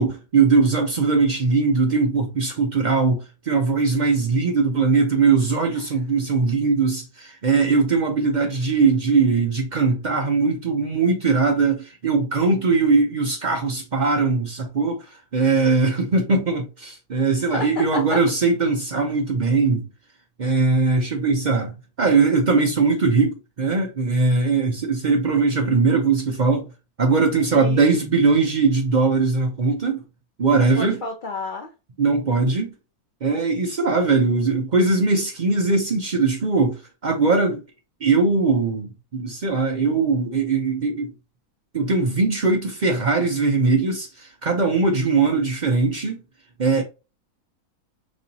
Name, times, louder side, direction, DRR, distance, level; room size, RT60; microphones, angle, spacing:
voice 1, 0.0-19.9 20.4-26.7 27.0-30.0 30.4-31.0 32.0-32.7 33.2-37.6 38.0-41.1 41.7-46.2 46.6-46.8, right 4 dB, 55° right, 0.5 m, -20 dB
voice 2, 17.5-18.2 27.5-27.9 30.5-31.7, left 4 dB, 65° left, 0.5 m, -31 dB
3.9 x 3.1 x 2.6 m
omnidirectional pair, 1.6 m